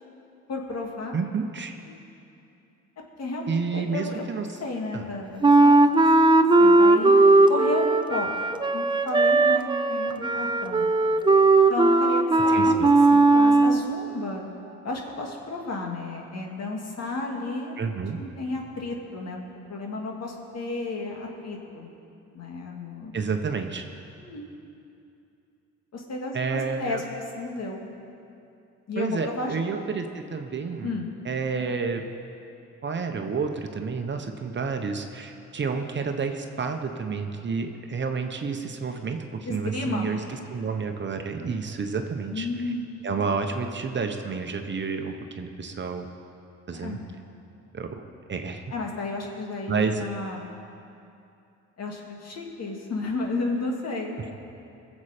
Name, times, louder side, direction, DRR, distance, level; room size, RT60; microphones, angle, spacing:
voice 1, 0.5-1.2 1.8-2.0 3.2-4.2 4.6-5.9 6.2-6.3 6.6-7.1 7.5-8.3 8.7-10.9 11.7-14.4 14.8-19.4 19.7-21.9 22.3-23.2 24.2-24.5 25.9-27.0 27.3-27.9 28.9-29.8 30.8-31.1 39.5-40.1 42.3-42.8 46.7-47.1 48.7-50.5 51.8-54.2, left 2 dB, 55° left, 0 dB, 2.3 m, -33 dB
voice 2, 1.1-1.7 3.5-4.5 4.9-5.1 12.5-12.9 17.8-18.2 23.1-23.8 26.3-27.0 29.0-30.9 31.2-32.0 32.8-40.2 40.5-42.5 43.0-46.1 46.7-47.0 47.7-47.9 48.3-48.6 49.7-50.1, right 5 dB, 40° right, 5 dB, 1.0 m, -30 dB
Wind instrument woodwind instrument, 5.4-13.8, right 2 dB, 15° right, 0.5 m, -18 dB
20.5 x 7.4 x 5.0 m, 2.7 s
cardioid pair, 90°, 30 cm